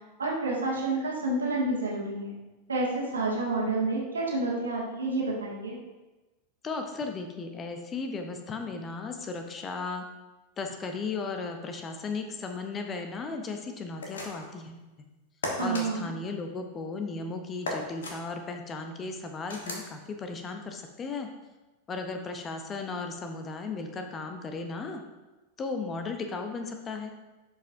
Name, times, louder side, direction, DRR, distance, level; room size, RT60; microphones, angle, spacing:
voice 1, 0.2-2.4 2.7-5.8 15.6-16.1, right 2 dB, 70° right, -3 dB, 1.9 m, -29 dB
voice 2, 6.6-10.1 10.6-14.8 15.6-21.3 21.9-25.0 25.6-27.1, left 4 dB, 25° left, 5 dB, 0.8 m, -35 dB
sound 1, 14.0-14.6 15.4-15.9 17.6-18.2 19.5-19.9, left 2 dB, 65° left, 1.3 m, -35 dB
11.0 x 5.2 x 2.7 m, 1.1 s
figure-of-eight pair, 90°, 0 cm